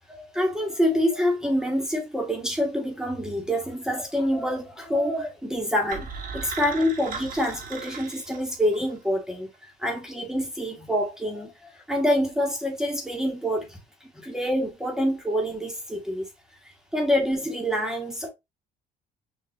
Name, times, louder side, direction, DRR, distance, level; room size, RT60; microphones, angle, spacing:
voice 1, 0.1-6.1 6.3-16.3 16.9-18.3, equal, 5° right, 1.4 m, -26 dB
sound 1, 5.9-8.9, right 5 dB, 55° right, 1.4 m, -37 dB
6.6 x 2.8 x 2.5 m
cardioid pair, 110°, 17 cm